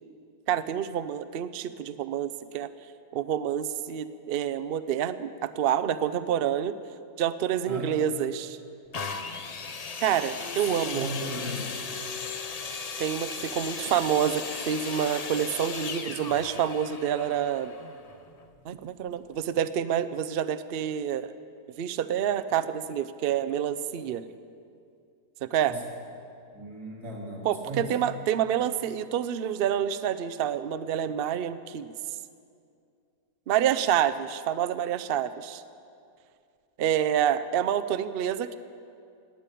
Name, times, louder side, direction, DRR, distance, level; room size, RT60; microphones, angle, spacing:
voice 1, 0.5-2.7 3.1-6.8 7.2-8.6 10.0-11.1 13.0-17.7 18.6-21.3 21.8-24.2 25.4-25.7 27.4-31.9 33.5-35.6 36.8-38.6, right 9 dB, 80° right, 12 dB, 0.5 m, -28 dB
voice 2, 7.6-8.0 10.6-11.8 25.6-25.8 26.5-27.9, equal, 65° right, -5 dB, 4.2 m, -36 dB
sound 1, 8.9-18.6 19.3-19.4, left 5 dB, 80° left, 0.3 m, -37 dB
18.5 x 8.5 x 9.2 m, 2.4 s
omnidirectional pair, 1.8 m